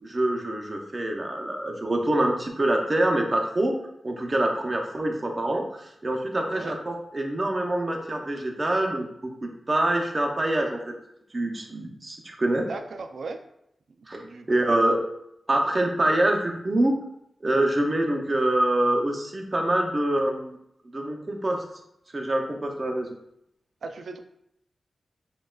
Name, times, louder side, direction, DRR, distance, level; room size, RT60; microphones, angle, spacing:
voice 1, 0.0-3.8 4.0-10.8 11.3-12.7 14.1-15.0 15.5-16.9 17.4-20.6 20.9-21.6 22.1-23.1, right 1 dB, 30° right, 1 dB, 0.6 m, -25 dB
voice 2, 12.6-13.4 14.2-14.8 23.8-24.2, right 3 dB, 70° right, 6 dB, 0.4 m, -37 dB
6.2 x 2.3 x 2.3 m, 0.76 s
wide cardioid pair, 125°, 0 cm